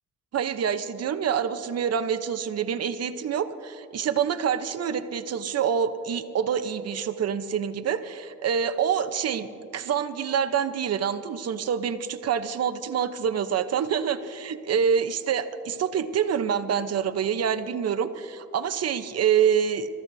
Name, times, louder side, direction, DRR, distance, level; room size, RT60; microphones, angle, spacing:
voice 1, 0.3-9.5 9.7-19.9, right 7 dB, 55° right, 10 dB, 0.9 m, -26 dB
25.5 x 14.5 x 2.7 m, 2.3 s
cardioid pair, 90°, 30 cm